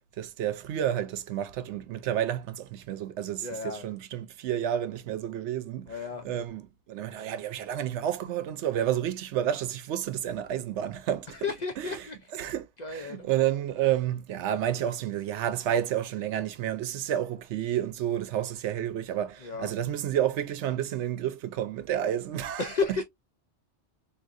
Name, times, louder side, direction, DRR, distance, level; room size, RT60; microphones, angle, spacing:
voice 1, 0.2-6.0 6.2-11.4 11.8-12.0 12.3-22.7, right 11 dB, 85° right, 0.9 m, -30 dB
voice 2, 3.4-3.8 5.9-6.3 11.3-12.2 12.8-13.3 19.4-19.7 22.6-23.0, left 4 dB, 55° left, 0.5 m, -32 dB
3.6 x 2.6 x 2.4 m
omnidirectional pair, 1.2 m